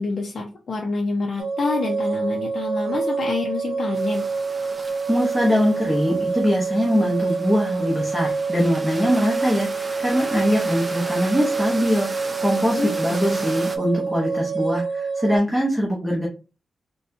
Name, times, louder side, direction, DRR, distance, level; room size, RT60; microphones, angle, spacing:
voice 1, 0.0-4.2 12.8-12.9 13.3-13.4, left 3 dB, 50° left, -2 dB, 0.6 m, -27 dB
sound 1, 1.4-15.4, right 4 dB, 90° right, 0.5 m, -27 dB
sound 2, 4.0-13.8, right 2 dB, 25° right, 0.5 m, -37 dB
voice 2, 5.1-12.1 12.4-16.3, equal, 5° left, -4 dB, 0.9 m, -22 dB
4.2 x 2.2 x 2.6 m, 0.31 s
wide cardioid pair, 145°, 0 cm